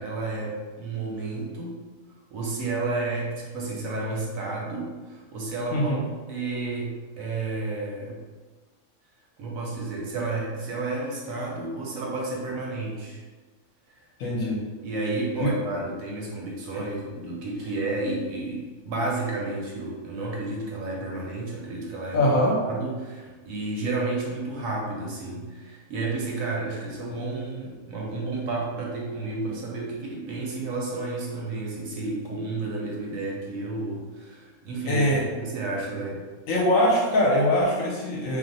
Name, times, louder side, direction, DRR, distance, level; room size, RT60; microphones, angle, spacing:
voice 1, 0.0-1.8 2.3-6.0 6.3-8.2 9.4-13.2 13.9-14.5 14.8-22.3 22.7-35.1 35.3-36.2, right 3 dB, 70° right, -2 dB, 0.9 m, -31 dB
voice 2, 5.7-6.0 14.2-14.6 15.4-15.5 22.1-22.6 34.9-35.2 36.5-38.4, left 1 dB, 70° left, -3 dB, 0.9 m, -22 dB
2.5 x 2.1 x 3.8 m, 1.3 s
omnidirectional pair, 1.6 m